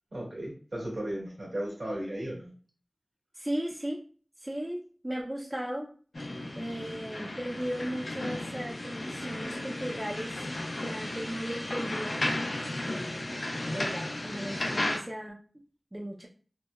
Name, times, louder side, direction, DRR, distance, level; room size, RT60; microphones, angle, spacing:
voice 1, 0.1-2.5, right 1 dB, 75° right, -4 dB, 1.4 m, -35 dB
voice 2, 3.3-4.0 4.4-5.9 6.6-10.3 10.8-12.3 12.8-13.1 13.7-15.4 15.9-16.3, equal, 20° right, -2 dB, 0.4 m, -36 dB
sound 1, 6.1-15.0, left 1 dB, 75° left, 0.5 m, -34 dB
2.8 x 2.1 x 2.2 m, 0.41 s
wide cardioid pair, 65°, 0 cm